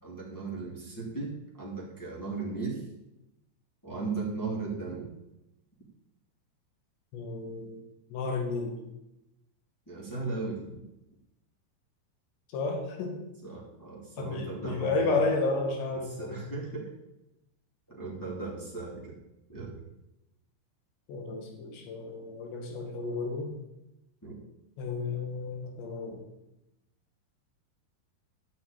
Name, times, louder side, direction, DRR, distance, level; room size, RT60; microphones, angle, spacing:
voice 1, 0.0-2.8 3.8-5.1 9.9-10.8 13.4-15.2 16.1-16.9 17.9-19.2 19.5-19.7 24.2-24.4, right 4 dB, 5° left, -5 dB, 2.3 m, -37 dB
voice 2, 7.1-7.8 8.1-8.8 12.5-13.2 14.2-16.4 21.1-23.5 24.8-26.2, left 3 dB, 85° left, 3 dB, 4.3 m, -32 dB
12.0 x 6.1 x 8.9 m, 0.91 s
omnidirectional pair, 4.9 m